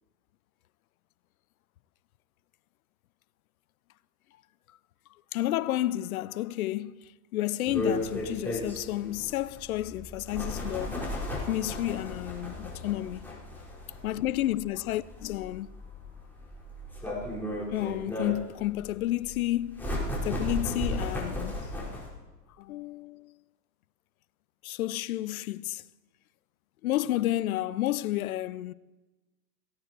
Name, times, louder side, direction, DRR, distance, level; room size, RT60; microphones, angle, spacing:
voice 1, 5.3-11.0 11.5-13.3 14.0-15.7 17.7-21.7 22.6-23.4 24.6-25.8 26.8-28.7, left 15 dB, 60° left, 0.7 m, -31 dB
sound 1, 7.7-22.1, left 1 dB, 5° left, 4.7 m, -35 dB
17.5 x 16.5 x 4.5 m
hypercardioid pair, 105°, 49 cm